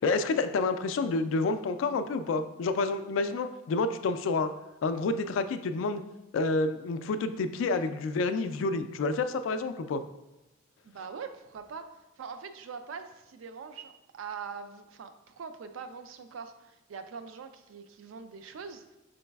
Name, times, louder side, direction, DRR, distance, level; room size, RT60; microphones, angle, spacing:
voice 1, 0.0-4.5 4.8-6.0 6.3-10.0, left 3 dB, 75° left, 11 dB, 0.3 m, -29 dB
voice 2, 10.8-19.0, right 6 dB, 85° right, 9 dB, 0.4 m, -43 dB
5.2 x 3.9 x 2.2 m, 1.0 s
head